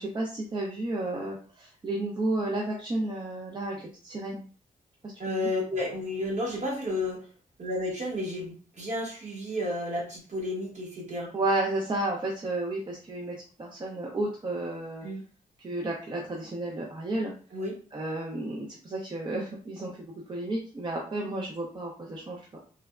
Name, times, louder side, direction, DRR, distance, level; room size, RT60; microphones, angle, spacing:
voice 1, 0.0-4.4 5.3-5.5 11.3-15.1 15.6-17.3 17.9-22.6, right 2 dB, 30° right, -1 dB, 0.5 m, -32 dB
voice 2, 5.2-7.2 7.6-11.3 15.0-15.2 17.5-17.7, left 1 dB, 50° right, -1 dB, 1.0 m, -32 dB
3.3 x 2.0 x 2.3 m, 0.39 s
cardioid pair, 100°, 15 cm